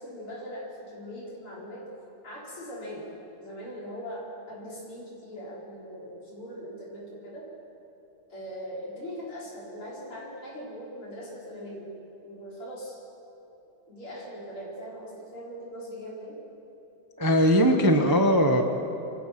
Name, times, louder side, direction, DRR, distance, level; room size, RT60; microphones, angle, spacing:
voice 1, 0.0-1.9 2.2-3.1 3.4-7.4 8.3-11.9 12.2-13.0 13.9-16.4, equal, 90° left, -6 dB, 5.7 m, -40 dB
voice 2, 17.2-18.6, equal, 20° right, 4 dB, 0.6 m, -20 dB
27.5 x 15.5 x 6.0 m, 2.9 s
omnidirectional pair, 2.3 m